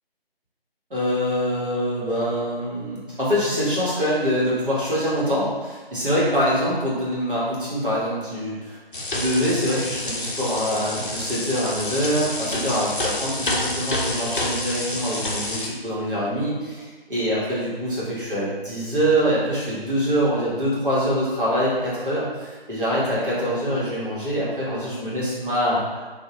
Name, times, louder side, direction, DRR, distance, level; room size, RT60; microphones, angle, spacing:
voice 1, 0.9-8.8 9.1-26.0, equal, 60° right, -8 dB, 1.4 m, -24 dB
sound 1, 8.9-15.7, left 2 dB, 55° left, 0.5 m, -28 dB
2.8 x 2.6 x 2.9 m, 1.3 s
figure-of-eight pair, 160°, 30 cm